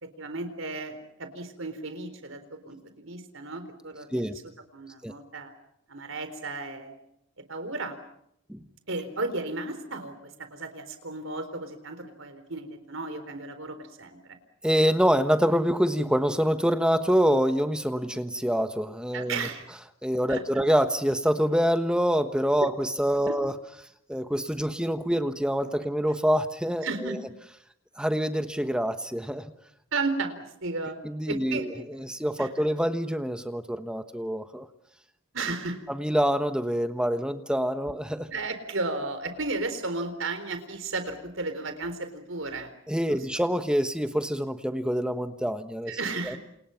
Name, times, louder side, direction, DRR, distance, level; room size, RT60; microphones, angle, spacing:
voice 1, 0.0-5.5 5.9-7.0 7.5-8.0 8.9-14.2 19.1-19.6 20.3-20.4 23.3-23.4 26.8-27.2 29.9-31.0 31.3-32.1 32.4-32.7 35.3-35.8 38.3-42.7 43.1-43.2 45.9-46.4, right 3 dB, 65° right, 9 dB, 4.0 m, -34 dB
voice 2, 14.6-19.4 20.0-23.5 24.1-27.2 28.0-29.5 31.0-34.7 35.9-38.3 42.9-46.0 46.2-46.4, equal, 5° right, 8 dB, 1.2 m, -26 dB
29.0 x 29.0 x 5.8 m, 0.75 s
head